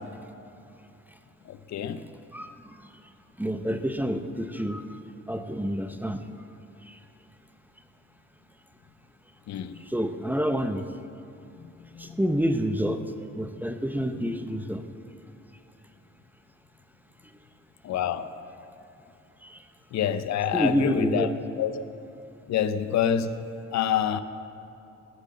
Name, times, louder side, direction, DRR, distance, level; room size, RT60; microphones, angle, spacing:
voice 1, 1.5-2.1 9.5-9.8 11.6-12.2 14.0-14.1 17.8-18.3 19.9-21.3 21.6-21.8 22.5-24.2, left 9 dB, 65° left, 12 dB, 0.6 m, -27 dB
voice 2, 2.3-2.9 3.4-5.0 5.3-6.2 6.8-7.0 9.8-10.8 12.0-13.0 13.3-14.8 19.4-19.6 20.5-21.3, equal, 5° right, 8 dB, 0.6 m, -28 dB
11.0 x 7.7 x 7.4 m, 2.8 s
cardioid pair, 90°, 30 cm